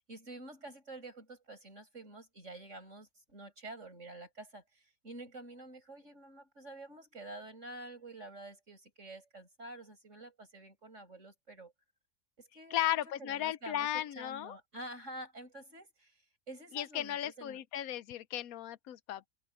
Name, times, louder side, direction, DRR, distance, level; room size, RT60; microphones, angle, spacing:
voice 1, 0.0-11.7 12.4-16.2 16.5-17.6, right 2 dB, 55° right, 7.7 m, -49 dB
voice 2, 12.7-14.6 16.7-19.3, left 12 dB, 85° left, 1.1 m, -35 dB
omnidirectional pair, 1.5 m